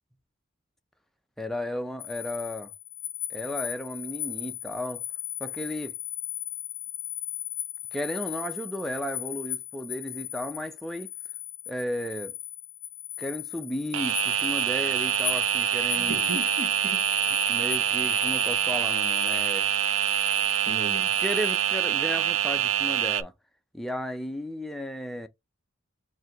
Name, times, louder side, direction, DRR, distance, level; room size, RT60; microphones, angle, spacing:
voice 1, 1.4-2.7 3.3-5.0 5.4-5.9 7.9-11.1 11.7-12.4 13.2-16.3 17.5-19.7 21.2-23.3 23.7-25.3, equal, ahead, 0.4 m, -34 dB
sound 1, 2.0-21.8, left 13 dB, 85° left, 0.5 m, -37 dB
sound 2, 13.9-23.2, right 11 dB, 85° right, 0.4 m, -25 dB
voice 2, 16.0-17.0 20.7-21.1, right 1 dB, 50° right, 0.9 m, -36 dB
4.6 x 2.2 x 3.7 m
head